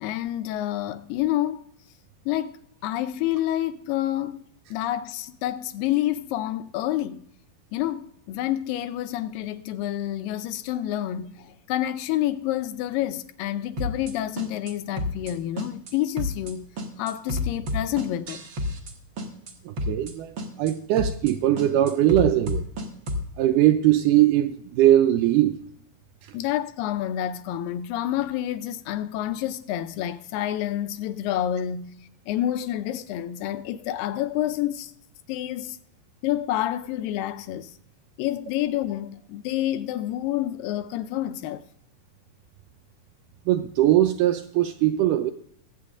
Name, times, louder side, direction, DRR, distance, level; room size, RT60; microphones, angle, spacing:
voice 1, 0.0-1.6 2.3-2.6 2.8-4.4 4.7-7.3 7.7-16.7 17.0-18.5 26.3-31.9 32.3-34.9 35.3-35.8 36.2-37.7 38.2-41.7, left 12 dB, 80° left, 2.3 m, -28 dB
sound 1, 13.8-14.1 14.4-14.7 15.0-15.3 15.6-16.5 16.8-18.9 19.2-19.5 19.8-20.1 20.4-20.7 21.0-21.3 21.6-23.3, left 2 dB, 55° right, 1.2 m, -29 dB
voice 2, 19.7-22.6 23.4-25.6 43.5-45.3, right 13 dB, 85° right, 1.9 m, -20 dB
21.5 x 8.4 x 2.5 m
omnidirectional pair, 4.1 m